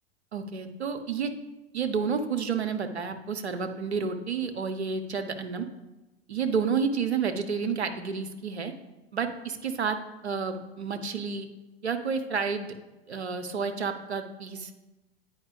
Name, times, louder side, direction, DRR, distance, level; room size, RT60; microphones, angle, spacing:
voice 1, 0.3-1.3 1.7-5.7 6.3-8.7 9.1-10.0 10.2-11.5 11.8-12.7 13.1-14.8, right 5 dB, 85° right, 7 dB, 0.7 m, -30 dB
8.6 x 4.8 x 3.2 m, 1.1 s
figure-of-eight pair, 85°, 32 cm